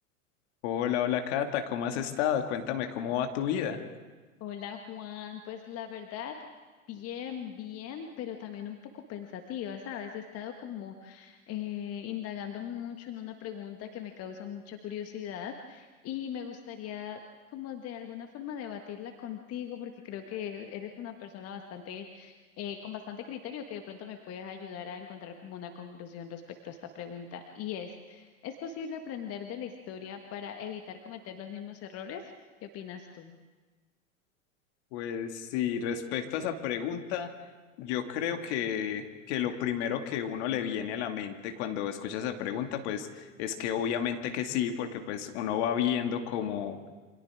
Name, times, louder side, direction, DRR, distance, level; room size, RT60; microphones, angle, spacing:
voice 1, 0.6-3.8 34.9-37.3 37.8-46.9, left 9 dB, 50° left, 5 dB, 2.2 m, -31 dB
voice 2, 4.4-6.3 6.9-17.2 17.5-32.2 32.6-33.3, left 9 dB, 35° left, 5 dB, 1.6 m, -40 dB
28.5 x 25.5 x 3.6 m, 1.3 s
figure-of-eight pair, 95°, 41 cm